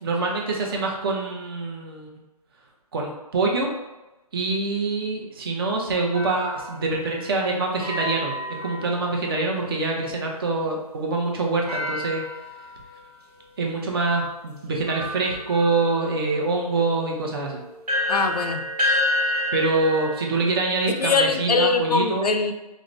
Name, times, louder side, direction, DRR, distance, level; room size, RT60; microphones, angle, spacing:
voice 1, 0.0-2.1 2.9-3.7 4.3-12.2 13.6-17.6 19.5-22.3, right 3 dB, 40° right, 0 dB, 0.6 m, -25 dB
sound 1, 6.1-9.6 11.7-13.2 13.9-14.0 14.9-21.7, left 1 dB, 80° right, 1.1 m, -30 dB
voice 2, 18.1-18.6 20.9-22.5, left 4 dB, 85° left, 6 dB, 0.5 m, -22 dB
4.7 x 2.1 x 2.6 m, 1.0 s
figure-of-eight pair, 145°, 20 cm